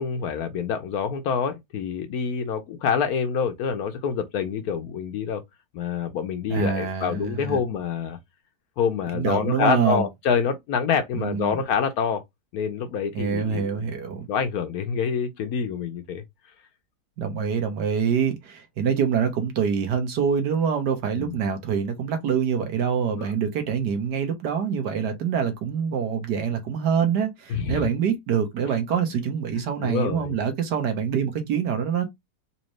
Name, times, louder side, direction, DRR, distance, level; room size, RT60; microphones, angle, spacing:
voice 1, 0.0-5.4 5.7-8.2 8.8-12.2 12.5-13.9 14.3-16.2 21.1-21.3 23.1-23.3 27.5-27.9 29.5-30.4, left 6 dB, 70° left, 1.0 m, -27 dB
voice 2, 6.5-7.6 9.1-10.1 11.2-11.6 13.1-14.3 17.2-32.1, right 7 dB, 70° right, 1.5 m, -25 dB
4.1 x 2.7 x 3.1 m
omnidirectional pair, 1.9 m